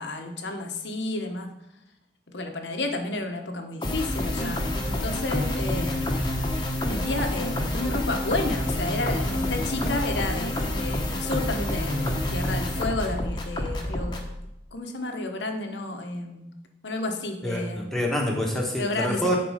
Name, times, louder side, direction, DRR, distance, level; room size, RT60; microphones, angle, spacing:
voice 1, 0.0-1.5 2.3-6.0 6.9-14.3 14.7-16.4 16.8-17.9 18.8-19.2, left 2 dB, 85° left, 4 dB, 1.2 m, -31 dB
sound 1, 3.8-14.3, left 1 dB, 25° left, 1.1 m, -28 dB
voice 2, 17.4-19.4, equal, 5° left, -1 dB, 1.4 m, -26 dB
10.5 x 4.3 x 5.0 m, 0.86 s
head